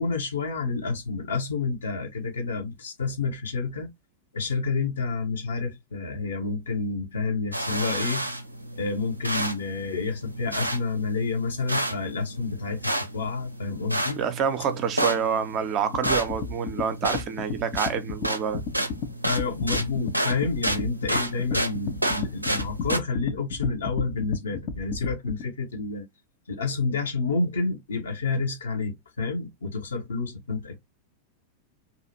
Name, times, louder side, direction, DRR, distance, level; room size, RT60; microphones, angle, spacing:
voice 1, 0.0-3.9 4.3-8.2 8.7-14.2 19.2-26.1 26.5-30.8, left 4 dB, 70° left, 1.0 m, -29 dB
sound 1, 7.5-23.0, right 1 dB, 90° right, 0.4 m, -31 dB
voice 2, 14.2-18.6, right 7 dB, 35° right, 0.5 m, -27 dB
sound 2, 15.9-25.4, left 5 dB, 40° left, 0.5 m, -33 dB
2.7 x 2.4 x 2.7 m
figure-of-eight pair, 90°, 0 cm